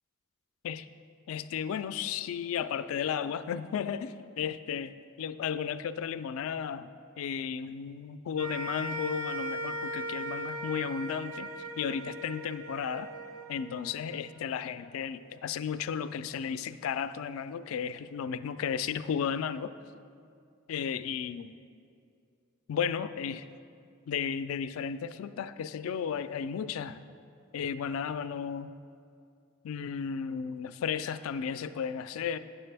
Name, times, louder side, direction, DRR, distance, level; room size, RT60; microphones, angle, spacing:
voice 1, 1.3-6.9 7.2-11.5 11.8-13.1 13.5-19.7 20.7-21.5 22.7-23.5 24.1-27.0 27.5-28.7 29.6-32.4, left 7 dB, 75° left, 12 dB, 0.3 m, -34 dB
sound 1, 8.4-14.8, equal, 80° right, 0.6 m, -38 dB
9.6 x 7.2 x 3.4 m, 2.4 s
head